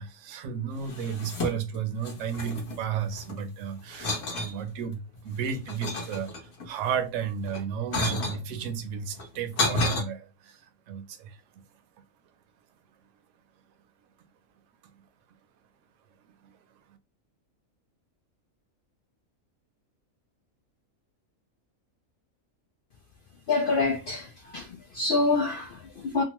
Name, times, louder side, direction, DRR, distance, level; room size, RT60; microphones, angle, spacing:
voice 1, 0.0-11.4 16.4-16.5, right 7 dB, 70° right, 0.9 m, -33 dB
sound 1, 0.8-1.8 2.0-3.4 3.9-4.6 5.1-6.7 7.4-8.4 9.1-10.0, left 2 dB, 55° left, 1.1 m, -31 dB
voice 2, 23.5-26.2, left 3 dB, 75° left, 0.5 m, -27 dB
2.9 x 2.1 x 2.9 m
omnidirectional pair, 1.4 m